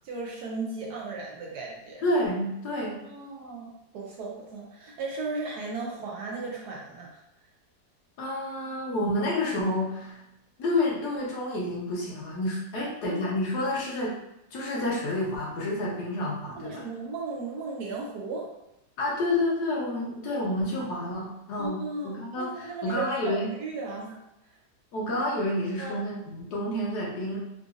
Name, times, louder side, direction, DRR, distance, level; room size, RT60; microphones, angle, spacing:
voice 1, 0.0-2.0 2.7-7.2 12.7-13.2 16.6-18.5 21.6-24.2 24.5-24.6 25.8-26.0, right 3 dB, 70° right, -3 dB, 1.1 m, -36 dB
voice 2, 2.0-3.0 8.2-10.2 10.6-14.2 14.5-16.9 19.0-23.5 24.9-27.4, left 1 dB, 65° left, -4 dB, 1.3 m, -29 dB
3.8 x 2.4 x 2.5 m, 0.86 s
omnidirectional pair, 2.0 m